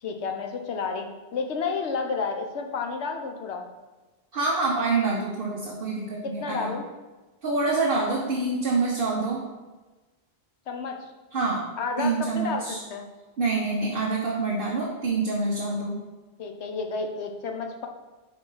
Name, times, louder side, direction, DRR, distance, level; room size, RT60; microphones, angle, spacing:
voice 1, 0.0-3.7 6.2-6.8 10.7-11.1 11.8-13.0 16.4-17.9, left 4 dB, 75° left, 4 dB, 1.1 m, -31 dB
voice 2, 4.3-6.8 7.4-9.4 11.3-11.7 12.0-12.8 13.4-16.0, right 3 dB, 55° right, -3 dB, 1.1 m, -26 dB
5.0 x 4.8 x 5.5 m, 1.2 s
omnidirectional pair, 1.2 m